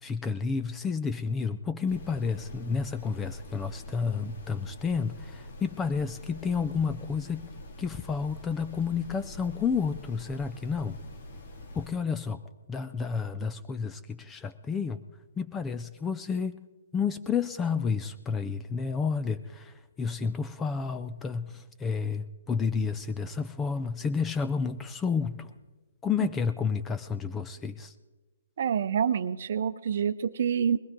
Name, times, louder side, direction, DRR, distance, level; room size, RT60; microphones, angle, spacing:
voice 1, 0.0-7.5 7.8-11.0 11.7-12.4 12.7-15.0 15.4-16.6 16.9-25.5 26.0-27.9, left 5 dB, 10° left, 12 dB, 0.4 m, -30 dB
sound 1, 1.9-11.9, left 1 dB, 55° left, 2.1 m, -45 dB
voice 2, 28.6-30.8, right 7 dB, 50° right, 13 dB, 0.7 m, -27 dB
20.5 x 15.5 x 3.7 m, 1.2 s
hypercardioid pair, 165°, 0 cm